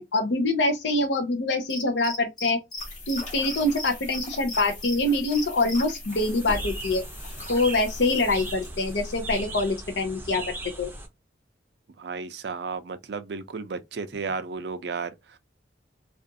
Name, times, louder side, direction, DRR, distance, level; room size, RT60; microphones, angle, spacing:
voice 1, 0.0-2.6 3.1-7.0 7.5-10.4 10.8-10.9, left 2 dB, 70° left, 0.6 m, -25 dB
Cricket, 1.7-2.8 3.1-3.2 3.5-4.9 5.3-5.8, left 2 dB, 25° left, 0.9 m, -35 dB
sound 1, 2.8-9.7, left 1 dB, 40° left, 1.1 m, -39 dB
sound 2, 6.1-11.1, right 2 dB, 10° right, 0.5 m, -39 dB
voice 2, 12.0-15.4, right 4 dB, 65° right, 0.4 m, -33 dB
2.5 x 2.3 x 2.6 m
head